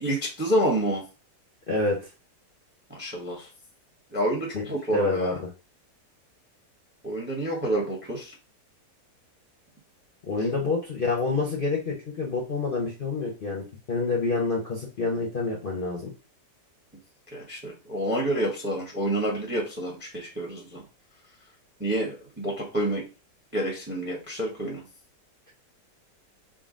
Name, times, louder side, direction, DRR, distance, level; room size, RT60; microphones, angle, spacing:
voice 1, 0.0-1.0 2.9-3.5 4.1-5.4 7.0-8.3 17.3-20.8 21.8-23.0 23.5-24.8, right 1 dB, 10° right, -1 dB, 0.6 m, -28 dB
voice 2, 1.7-2.0 4.5-4.6 4.9-5.3 10.2-16.1, left 3 dB, 45° left, -2 dB, 0.7 m, -27 dB
3.8 x 2.3 x 3.6 m, 0.32 s
omnidirectional pair, 1.8 m